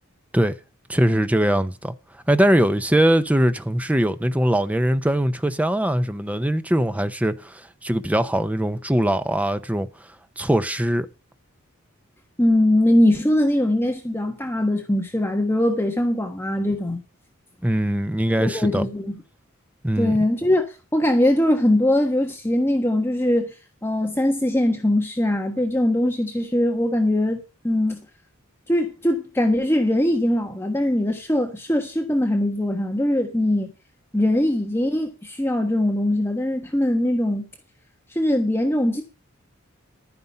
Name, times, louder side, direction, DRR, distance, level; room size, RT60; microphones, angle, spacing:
voice 1, 0.9-1.9 2.3-9.9 10.4-11.1 17.6-18.9 19.8-20.2, right 1 dB, 5° right, 0.7 m, -21 dB
voice 2, 12.4-17.0 18.4-19.2 20.0-23.5 23.8-28.0 28.7-33.7 34.1-37.4 38.1-39.0, left 1 dB, 10° left, 1.3 m, -21 dB
12.0 x 9.6 x 5.5 m
head